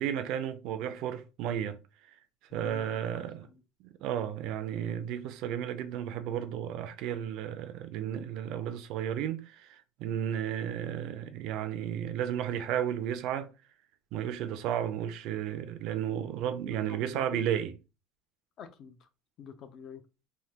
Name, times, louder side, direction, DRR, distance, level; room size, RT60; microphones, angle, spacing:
voice 1, 0.0-1.8 2.5-3.5 4.0-13.5 14.1-17.7, right 10 dB, 55° right, 0.4 m, -33 dB
voice 2, 2.5-3.1 3.4-3.6 16.7-17.4 18.6-19.0 19.4-20.0, left 7 dB, 40° left, 0.4 m, -47 dB
3.3 x 2.1 x 2.8 m
cardioid pair, 165°, 0 cm